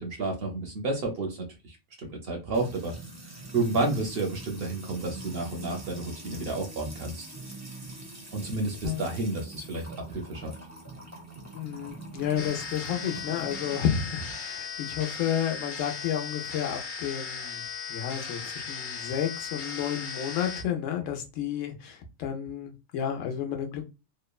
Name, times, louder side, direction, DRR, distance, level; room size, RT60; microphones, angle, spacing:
voice 1, 0.0-2.9 3.5-7.2 8.3-10.5, right 2 dB, 60° right, 2 dB, 0.7 m, -31 dB
Music / Water tap faucet / Trickle dribble, 2.5-14.3, right 2 dB, 20° right, 0.5 m, -44 dB
voice 2, 11.5-17.6 17.9-23.8, left 9 dB, 85° left, 4 dB, 1.0 m, -31 dB
sound 1, 12.4-20.6, left 5 dB, 60° left, 0.5 m, -37 dB
3.0 x 2.1 x 2.2 m, 0.28 s
omnidirectional pair, 1.3 m